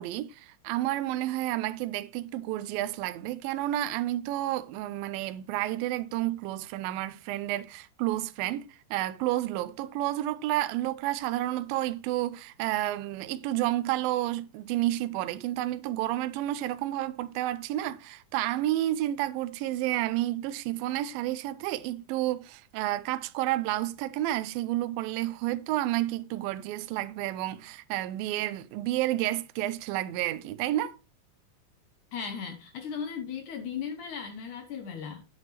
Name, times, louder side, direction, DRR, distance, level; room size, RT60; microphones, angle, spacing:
voice 1, 0.0-31.0, right 15 dB, 80° right, 2.3 m, -30 dB
voice 2, 32.1-35.2, left 7 dB, 70° left, 1.9 m, -36 dB
9.2 x 8.6 x 3.1 m
omnidirectional pair, 4.3 m